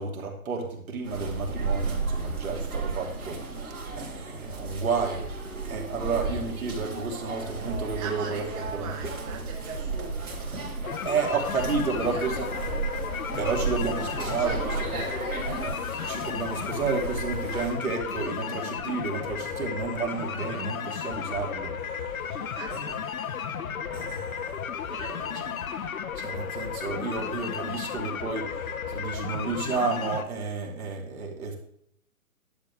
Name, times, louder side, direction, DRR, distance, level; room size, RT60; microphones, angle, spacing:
voice 1, 0.0-9.0 11.0-12.5 13.4-14.6 14.9-15.1 16.1-22.0 22.7-22.8 23.9-24.6 26.2-28.6 28.9-31.6, right 4 dB, 70° right, -1 dB, 2.8 m, -31 dB
sound 1, 1.0-17.7, right 3 dB, 85° right, 3.8 m, -34 dB
voice 2, 7.9-10.7 11.3-11.7 12.0-12.6 14.0-15.6 22.2-23.0 24.9-25.6, right 6 dB, 25° right, 1 dB, 1.0 m, -43 dB
sound 2, 10.8-30.2, left 7 dB, 70° left, 1.0 m, -34 dB
11.5 x 7.2 x 3.5 m, 0.72 s
hypercardioid pair, 150°, 43 cm